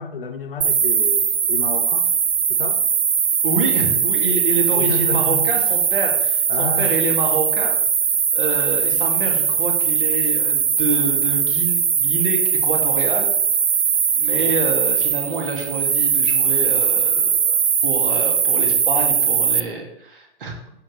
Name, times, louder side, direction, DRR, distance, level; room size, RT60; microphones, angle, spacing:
voice 1, 0.0-2.1 2.5-2.8 4.7-5.5 6.5-6.9 14.3-14.6, left 4 dB, 55° left, 6 dB, 1.2 m, -30 dB
sound 1, 0.6-19.6, right 7 dB, 90° right, 0.6 m, -20 dB
voice 2, 3.4-7.8 8.3-13.3 14.1-20.5, right 3 dB, 55° right, 1 dB, 2.4 m, -27 dB
14.0 x 5.3 x 3.3 m, 0.78 s
figure-of-eight pair, 130°, 33 cm